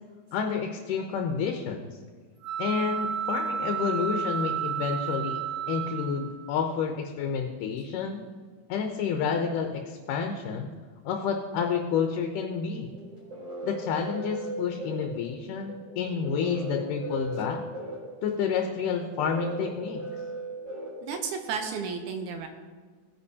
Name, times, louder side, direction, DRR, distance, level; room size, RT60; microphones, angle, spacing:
voice 1, 0.3-1.9 2.6-5.4 5.7-8.2 8.7-10.7 11.1-12.9 13.6-17.6 18.2-20.0, left 6 dB, 85° left, 3 dB, 2.3 m, -29 dB
sound 1, 2.4-6.5, right 8 dB, 50° right, 1.1 m, -32 dB
sound 2, 12.9-21.6, right 1 dB, 25° right, 4.0 m, -38 dB
voice 2, 21.0-22.5, right 5 dB, 75° right, 6 dB, 2.1 m, -33 dB
17.0 x 9.7 x 2.8 m, 1.5 s
omnidirectional pair, 3.7 m